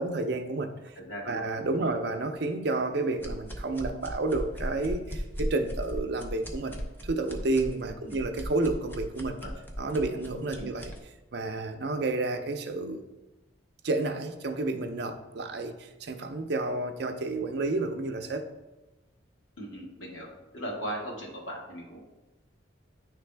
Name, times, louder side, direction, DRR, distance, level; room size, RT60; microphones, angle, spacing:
voice 1, 0.0-1.0 1.3-6.8 7.0-9.4 9.8-10.9 11.3-13.0 13.8-18.5, right 2 dB, 55° right, 6 dB, 0.5 m, -30 dB
voice 2, 0.9-1.4 1.7-1.9 8.0-8.1 9.4-9.5 10.6-10.7 19.6-20.3 20.5-22.0, right 1 dB, 80° left, -3 dB, 1.7 m, -38 dB
sound 1, 3.2-11.0, equal, 10° left, 0.6 m, -37 dB
9.7 x 3.3 x 3.3 m, 1.1 s
head